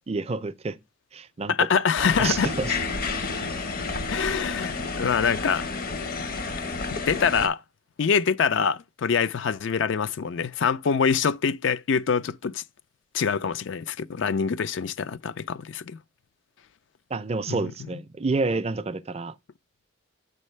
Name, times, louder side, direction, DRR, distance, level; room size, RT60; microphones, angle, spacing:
voice 1, 0.1-0.8 1.1-1.8 2.2-2.8 17.1-19.3, right 3 dB, 30° right, 0.4 m, -29 dB
voice 2, 1.5-2.5 4.1-5.7 7.1-7.6 8.0-12.6 13.1-16.0 17.5-17.6, left 6 dB, 65° left, 0.4 m, -25 dB
sound 1, 2.0-7.5, left 4 dB, 45° left, 0.8 m, -30 dB
7.3 x 5.4 x 3.1 m
head